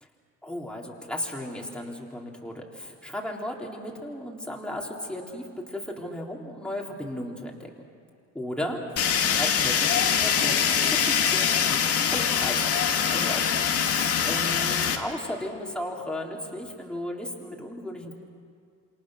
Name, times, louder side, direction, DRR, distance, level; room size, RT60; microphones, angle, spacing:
voice 1, 0.4-7.7 8.3-12.8 13.1-18.1, left 1 dB, 5° left, -1 dB, 3.8 m, -35 dB
Fire, 9.0-15.0, left 7 dB, 45° left, 2.2 m, -23 dB
28.0 x 27.0 x 6.5 m, 2.3 s
cardioid pair, 120°, 34 cm